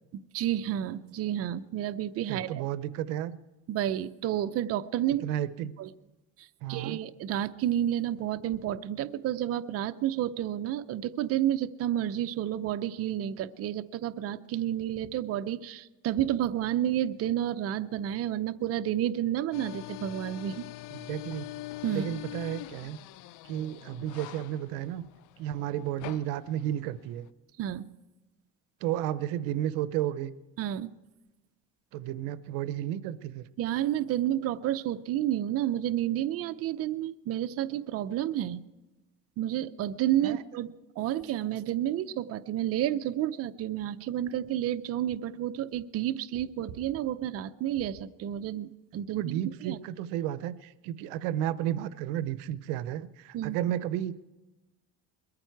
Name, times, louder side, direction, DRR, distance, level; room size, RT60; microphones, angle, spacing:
voice 1, 0.1-2.6 3.7-5.2 5.8-5.9 6.7-20.7 21.8-22.1 27.6-27.9 30.6-30.9 33.6-38.6 39.4-40.7 41.0-49.8 53.3-53.6, right 11 dB, 45° right, 11 dB, 0.7 m, -30 dB
voice 2, 2.3-3.4 5.1-5.7 6.6-7.0 21.1-21.5 21.9-23.0 23.5-25.0 25.4-27.3 28.8-30.3 31.9-33.4 40.2-40.4 49.1-54.2, right 12 dB, 85° right, 16 dB, 0.7 m, -32 dB
sound 1, 19.5-27.3, left 17 dB, 65° left, 0.6 m, -43 dB
21.5 x 14.0 x 4.6 m, 1.1 s
cardioid pair, 125°, 33 cm